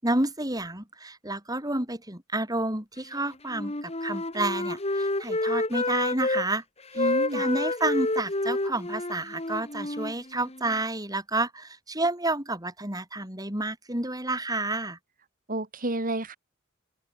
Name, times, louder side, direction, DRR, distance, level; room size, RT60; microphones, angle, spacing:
voice 1, 0.0-6.6 6.9-7.0 7.3-15.0, right 2 dB, 20° right, 7.5 m, -30 dB
Wind instrument woodwind instrument, 3.5-6.5 6.9-10.8, left 2 dB, 30° left, 2.8 m, -29 dB
voice 2, 7.0-7.4 15.5-16.4, right 1 dB, 45° right, 2.7 m, -30 dB
open air
head